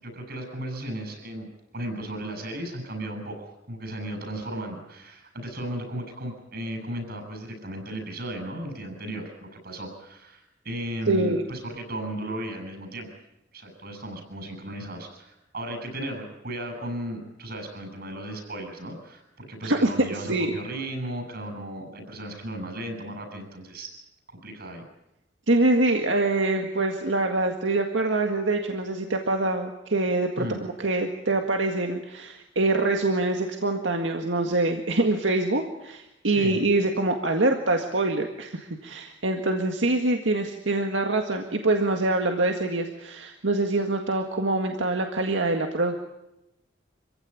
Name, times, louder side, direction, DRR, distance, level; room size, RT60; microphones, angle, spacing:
voice 1, 0.0-13.1 13.5-23.9 24.4-24.8 30.4-30.6 36.2-36.6, right 1 dB, 55° right, 5 dB, 7.4 m, -35 dB
voice 2, 11.1-11.4 19.6-20.5 25.5-46.0, right 2 dB, 90° right, 4 dB, 1.9 m, -25 dB
26.5 x 16.5 x 9.9 m, 0.91 s
head